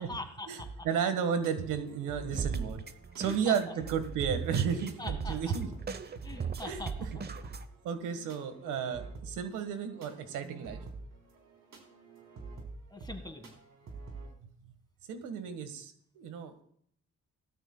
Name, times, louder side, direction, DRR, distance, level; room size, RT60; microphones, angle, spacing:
voice 1, 0.0-0.9 3.2-3.6 5.0-5.6 6.2-7.2 8.2-8.3 8.6-9.1 12.9-13.5, left 2 dB, 15° left, 6 dB, 1.8 m, -43 dB
sound 1, 0.6-14.3, right 3 dB, 65° right, 3.7 m, -48 dB
voice 2, 0.8-2.8 3.2-5.7 6.6-6.8 7.8-10.9 15.1-16.6, right 7 dB, 90° right, 9 dB, 1.6 m, -33 dB
sound 2, 2.3-7.6, right 6 dB, 35° right, 0.8 m, -38 dB
18.5 x 12.5 x 2.3 m, 0.65 s
cardioid pair, 90°, 30 cm